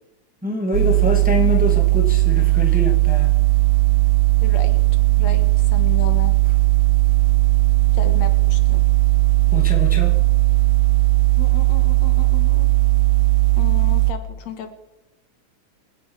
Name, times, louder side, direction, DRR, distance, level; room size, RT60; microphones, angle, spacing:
voice 1, 0.4-3.4 9.5-10.2, left 2 dB, 5° right, 2 dB, 1.9 m, -25 dB
sound 1, 0.7-14.1, right 21 dB, 75° right, 1.3 m, -17 dB
voice 2, 4.4-4.8 5.2-6.3 7.9-8.8 11.4-12.7 13.6-14.7, left 7 dB, 65° left, 8 dB, 2.6 m, -34 dB
27.5 x 10.5 x 4.8 m, 0.93 s
omnidirectional pair, 3.4 m